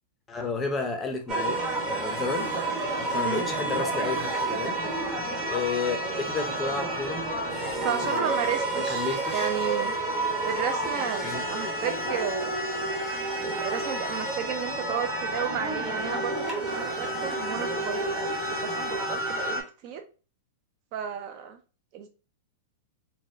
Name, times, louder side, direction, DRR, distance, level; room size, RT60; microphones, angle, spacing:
voice 1, 0.3-2.5 3.1-4.8 5.5-7.2 7.7-9.5 11.2-11.4, left 4 dB, 15° left, 0.5 m, -32 dB
sound 1, 1.3-19.6, right 2 dB, 20° right, 0.9 m, -30 dB
voice 2, 3.1-3.4 7.8-10.0 10.4-12.5 13.4-20.0 20.9-21.6 21.9-22.1, right 8 dB, 40° right, 0.4 m, -33 dB
4.0 x 2.1 x 2.5 m
supercardioid pair, 160°, 0 cm